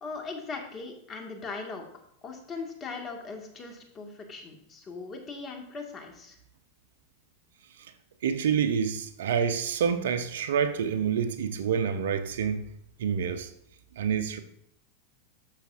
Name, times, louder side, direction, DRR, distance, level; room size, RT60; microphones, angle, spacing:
voice 1, 0.0-1.8 2.2-6.4, left 4 dB, 30° left, 1.8 m, -39 dB
voice 2, 8.2-12.7 13.0-13.5 14.0-14.4, right 7 dB, 75° right, 0.7 m, -27 dB
11.5 x 6.9 x 2.6 m
hypercardioid pair, 100°, 0 cm